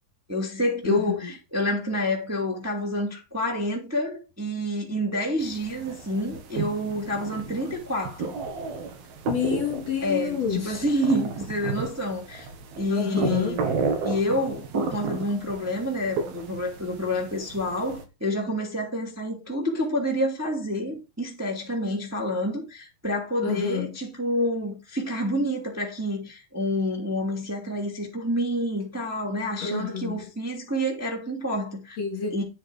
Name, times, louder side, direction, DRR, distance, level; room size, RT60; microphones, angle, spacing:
voice 1, 0.3-8.4 10.0-12.5 12.8-13.7 14.0-32.0 32.3-32.4, equal, 5° right, 2.3 m, -28 dB
sound 1, 5.4-18.0, right 4 dB, 80° right, 3.5 m, -33 dB
voice 2, 9.3-10.8 12.9-13.6 23.4-23.9 29.6-30.2 32.0-32.3, left 7 dB, 50° left, 3.1 m, -28 dB
9.9 x 6.6 x 4.9 m
omnidirectional pair, 4.3 m